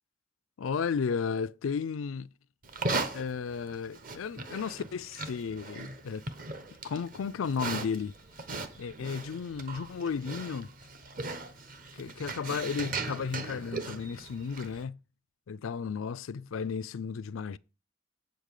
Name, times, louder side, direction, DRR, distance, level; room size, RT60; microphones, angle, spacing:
voice 1, 0.6-2.3 3.1-6.3 6.8-8.1 8.8-10.7 11.9-15.0 15.5-17.6, left 6 dB, 85° left, 0.4 m, -34 dB
Livestock farm animals working animals, 2.6-14.8, right 3 dB, 40° right, 1.0 m, -38 dB
8.0 x 5.2 x 6.5 m
head